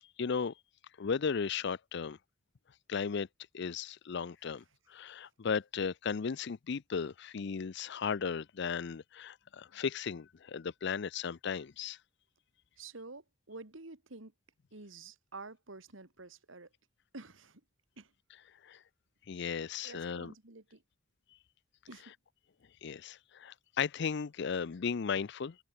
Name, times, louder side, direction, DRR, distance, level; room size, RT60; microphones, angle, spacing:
voice 1, 0.2-0.5 1.0-2.2 2.9-3.3 3.5-4.6 4.9-12.0 18.6-18.8 19.3-20.3 22.8-25.6, left 6 dB, 60° left, 0.5 m, -35 dB
voice 2, 12.8-14.3 14.7-16.7 17.1-17.6 18.0-18.1 19.8-20.8 21.9-22.1, right 3 dB, 90° right, 2.3 m, -49 dB
open air
head